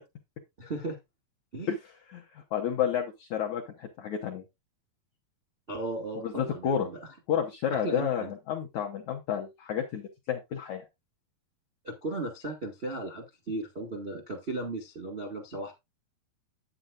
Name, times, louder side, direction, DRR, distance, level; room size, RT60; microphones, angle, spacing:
voice 1, 0.6-1.0 1.5-1.7 5.7-7.0 7.7-8.3 11.8-15.7, right 2 dB, 45° right, 1 dB, 0.7 m, -36 dB
voice 2, 2.1-4.4 6.2-6.9 7.3-10.8, left 8 dB, 75° left, 2 dB, 1.6 m, -31 dB
9.6 x 8.8 x 2.5 m, 0.21 s
omnidirectional pair, 4.6 m